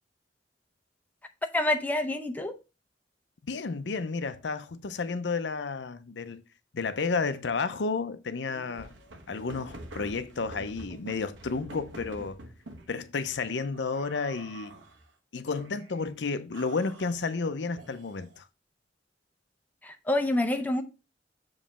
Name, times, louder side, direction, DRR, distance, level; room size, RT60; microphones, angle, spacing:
voice 1, 1.5-2.6 19.8-20.8, left 1 dB, 10° left, 0.6 m, -27 dB
voice 2, 3.4-6.4 6.7-8.9 9.3-12.4 12.9-14.8 15.3-18.5, left 4 dB, 70° left, 0.6 m, -32 dB
sound 1, 8.5-12.9 13.7-15.0 15.5-16.1 16.5-18.4, right 1 dB, 85° right, 1.2 m, -47 dB
7.2 x 3.2 x 5.6 m
head